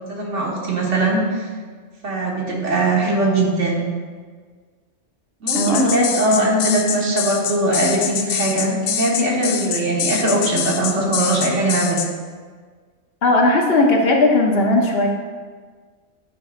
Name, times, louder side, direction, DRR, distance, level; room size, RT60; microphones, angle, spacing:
voice 1, 0.1-1.2 2.0-3.8 5.4-12.0, right 1 dB, 80° right, -2 dB, 1.7 m, -20 dB
sound 1, 5.5-12.1, left 7 dB, 85° left, 0.9 m, -24 dB
voice 2, 5.5-6.5 13.2-15.1, left 2 dB, 60° left, 1 dB, 1.1 m, -17 dB
9.2 x 3.3 x 5.0 m, 1.5 s
omnidirectional pair, 1.2 m